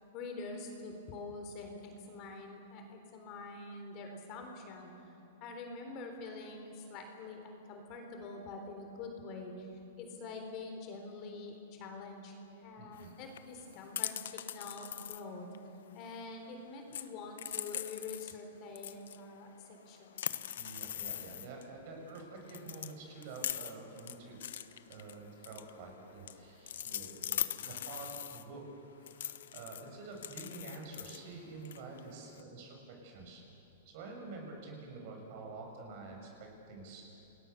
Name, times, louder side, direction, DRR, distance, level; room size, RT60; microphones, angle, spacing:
voice 1, 0.1-5.1 5.4-9.7 10.0-15.5 15.9-20.2, left 3 dB, 35° left, 4 dB, 3.8 m, -46 dB
voice 2, 12.8-13.1 20.6-28.6 28.9-33.4 33.8-37.2, right 3 dB, 50° right, 1 dB, 6.9 m, -48 dB
sound 1, 12.9-16.4 16.8-18.4 18.8-21.6 22.1-22.2 22.5-28.5 29.1-32.4, left 10 dB, 75° left, 1.0 m, -42 dB
29.5 x 20.5 x 7.1 m, 3.0 s
hypercardioid pair, 155°, 0 cm